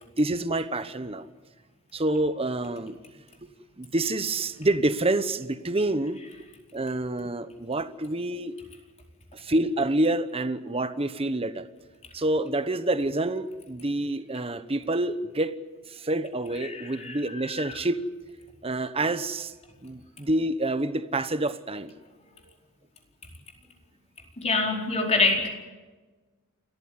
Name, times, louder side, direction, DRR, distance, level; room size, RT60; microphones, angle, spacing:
voice 1, 0.2-1.3 1.9-3.0 3.8-6.2 6.7-8.5 9.3-11.7 12.1-15.6 15.9-18.0 18.6-19.5 19.8-21.9, right 2 dB, 25° right, 11 dB, 1.0 m, -27 dB
voice 2, 16.6-17.7 24.4-25.5, left 3 dB, 30° left, 1 dB, 4.7 m, -26 dB
28.5 x 14.5 x 9.7 m, 1.3 s
head